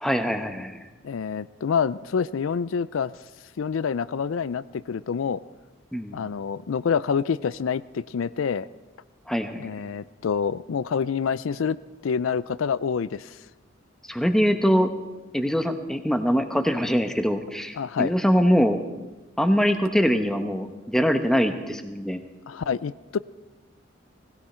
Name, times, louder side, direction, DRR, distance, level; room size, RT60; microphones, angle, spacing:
voice 1, 0.0-0.8 5.9-6.3 9.3-9.7 14.1-14.9 15.3-18.8 19.4-22.2, equal, 5° left, 6 dB, 1.0 m, -23 dB
voice 2, 1.0-3.1 3.6-5.4 6.1-8.7 9.6-11.8 12.0-13.4 17.8-18.1 22.5-23.2, left 6 dB, 85° left, 17 dB, 0.4 m, -27 dB
19.5 x 16.5 x 4.4 m, 1.1 s
head